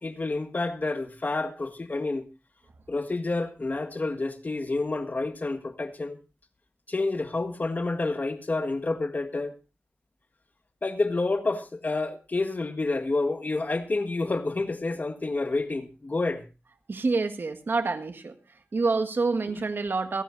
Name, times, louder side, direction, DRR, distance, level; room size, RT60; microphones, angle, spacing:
voice 1, 0.0-2.2 2.9-6.2 6.9-9.6 10.8-16.4, left 3 dB, 50° left, 1.6 m, -29 dB
voice 2, 16.9-18.3 18.7-20.2, right 3 dB, 80° right, 1.7 m, -27 dB
29.5 x 11.0 x 2.7 m
wide cardioid pair, 80°, 4 cm